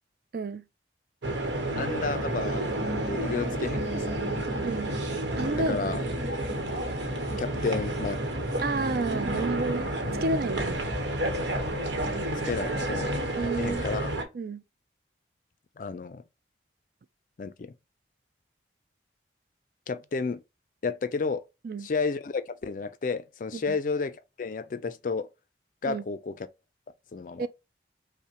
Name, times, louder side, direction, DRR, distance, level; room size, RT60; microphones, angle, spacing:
voice 1, 0.3-0.6 4.6-4.9 5.4-5.8 8.6-9.9 10.2-10.9 13.4-13.8 14.3-14.6 21.6-21.9 23.5-23.8 25.8-26.0 27.4-27.5, right 3 dB, 55° right, 0.3 m, -30 dB
sound 1, 1.2-14.2, right 1 dB, 80° right, 1.0 m, -30 dB
voice 2, 1.8-2.7 3.1-4.1 5.6-6.0 7.4-8.4 12.5-13.1 13.6-14.2 15.8-16.2 17.4-17.7 19.9-20.4 20.8-21.4 21.8-25.3 25.8-26.5 27.1-27.5, left 4 dB, 45° left, 0.4 m, -32 dB
5.4 x 2.1 x 2.8 m
head